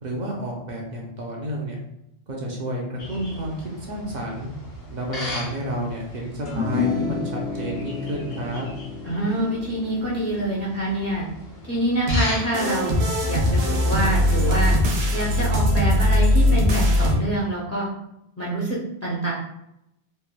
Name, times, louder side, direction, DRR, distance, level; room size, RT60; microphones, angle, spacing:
voice 1, 0.0-1.8 2.3-4.5 4.9-8.7, equal, 55° right, -1 dB, 0.6 m, -30 dB
sound 1, 3.0-13.3, equal, 75° left, 1.2 m, -38 dB
sound 2, 6.5-13.0, left 5 dB, 55° left, 0.7 m, -32 dB
voice 2, 9.0-11.2 11.7-13.0 13.3-14.7 15.1-17.9 18.4-19.3, right 1 dB, 25° left, -6 dB, 0.4 m, -26 dB
sound 3, 12.1-17.1, left 1 dB, 85° right, 0.9 m, -20 dB
3.1 x 2.1 x 2.2 m, 0.81 s
omnidirectional pair, 1.1 m